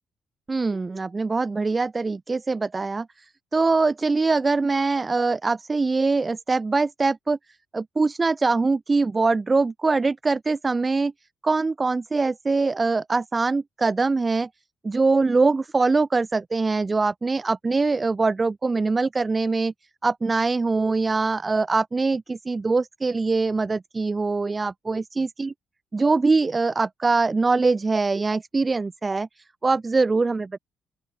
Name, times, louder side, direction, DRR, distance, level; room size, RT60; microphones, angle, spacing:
voice 1, 0.5-7.4 7.7-11.1 11.4-14.5 14.8-19.7 20.0-25.5 25.9-30.6, right 3 dB, 25° right, 1.1 m, -23 dB
open air
cardioid pair, 90°, 0 cm